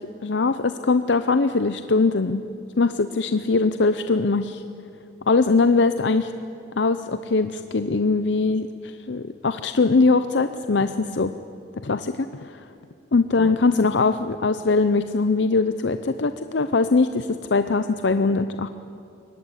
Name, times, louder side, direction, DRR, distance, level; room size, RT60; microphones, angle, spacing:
voice 1, 0.0-2.4 2.8-4.6 5.3-6.3 6.8-8.7 9.1-11.3 11.8-12.6 13.1-18.7, left 3 dB, 70° left, 10 dB, 0.7 m, -21 dB
23.0 x 19.0 x 9.9 m, 2.6 s
head